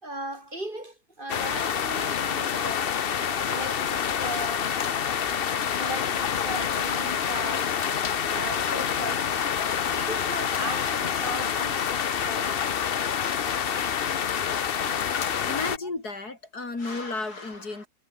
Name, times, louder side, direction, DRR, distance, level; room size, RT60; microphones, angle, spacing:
voice 1, 0.0-5.1 5.8-7.8 8.3-12.7 13.7-13.8 14.9-15.3, right 1 dB, 30° right, 4.1 m, -38 dB
sound 1, 1.3-15.8, left 8 dB, 45° left, 0.8 m, -27 dB
voice 2, 15.4-17.9, left 3 dB, 75° left, 4.9 m, -33 dB
omnidirectional pair, 1.7 m